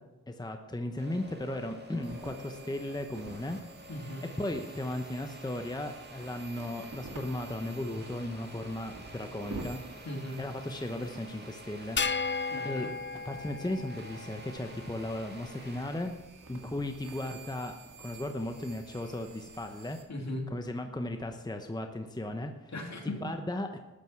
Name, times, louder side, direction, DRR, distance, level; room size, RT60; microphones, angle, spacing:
voice 1, 0.3-3.6 4.4-9.8 10.4-12.0 12.6-12.9 13.3-16.1 16.5-20.0 20.5-22.7 23.0-23.8, left 1 dB, 10° left, 6 dB, 0.9 m, -36 dB
sound 1, 1.0-13.0 13.3-16.2, right 1 dB, 30° right, 2.2 m, -50 dB
sound 2, 2.0-20.0, right 3 dB, 70° right, 2.2 m, -49 dB
voice 2, 3.9-4.2 10.0-10.4 12.5-12.9 20.1-20.5 22.7-23.2, left 1 dB, 55° left, 1 dB, 3.0 m, -38 dB
sound 3, 12.0-14.5, left 4 dB, 35° left, 0.5 m, -34 dB
13.0 x 9.4 x 5.9 m, 1.1 s
wide cardioid pair, 75°, 33 cm